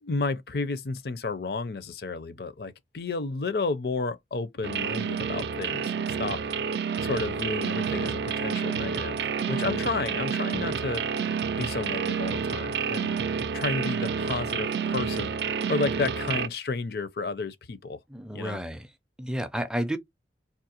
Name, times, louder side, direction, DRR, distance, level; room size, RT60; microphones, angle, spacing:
voice 1, 0.0-5.9 6.2-6.4 7.0-9.2 9.5-11.0 11.6-13.2 13.5-15.3 15.7-18.0 18.3-18.6, left 3 dB, 60° left, 0.5 m, -31 dB
sound 1, 4.6-16.5, right 6 dB, 70° right, 0.4 m, -29 dB
voice 2, 18.1-18.9 19.2-20.0, equal, 5° right, 0.4 m, -31 dB
3.7 x 2.7 x 2.8 m
head